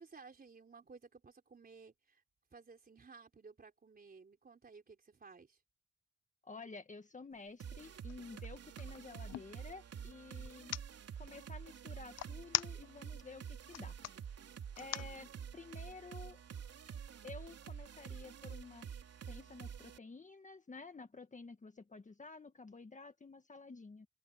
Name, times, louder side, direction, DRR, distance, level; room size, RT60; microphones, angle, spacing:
voice 1, 0.0-2.2 2.5-5.6, right 4 dB, 30° right, 3.7 m, -57 dB
voice 2, 6.4-10.8 11.2-14.0 14.8-16.4 17.2-18.9 19.3-24.1, left 4 dB, 25° left, 1.8 m, -51 dB
sound 1, 7.3-7.5 7.9-9.5 10.4-10.8 12.2-13.2 13.6-14.1 14.8-15.1, left 12 dB, 60° left, 0.7 m, -39 dB
sound 2, 7.6-20.0, right 8 dB, 55° right, 3.2 m, -48 dB
cardioid pair, 90°, 30 cm